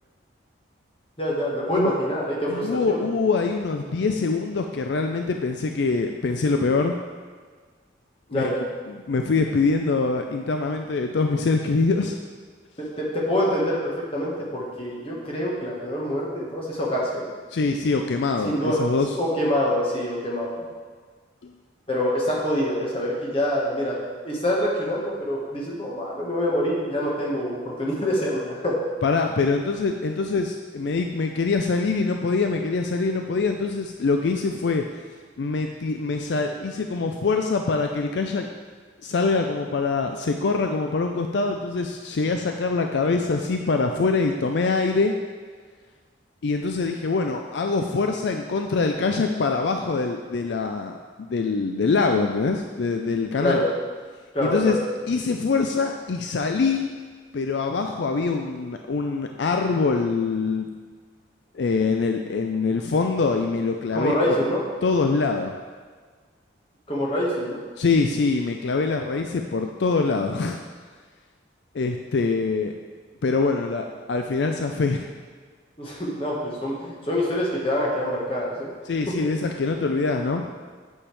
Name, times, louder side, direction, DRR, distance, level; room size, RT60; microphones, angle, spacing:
voice 1, 1.2-3.0 8.3-8.6 12.8-17.3 18.4-20.7 21.9-24.0 24.2-28.7 53.4-53.7 54.3-54.8 63.9-64.6 66.9-67.6 75.8-78.7 79.1-79.2, equal, 30° left, -4 dB, 1.5 m, -25 dB
voice 2, 2.5-7.0 8.3-8.5 9.1-12.2 17.5-19.1 21.4-21.5 29.0-34.8 35.4-38.5 39.0-45.1 46.4-50.9 51.2-53.6 54.4-54.8 55.1-56.9 57.3-60.7 61.5-64.4 64.8-65.5 67.8-70.6 71.7-72.7 73.2-75.1 78.9-80.5, left 4 dB, 70° left, 4 dB, 0.4 m, -24 dB
8.6 x 6.5 x 3.3 m, 1.5 s
head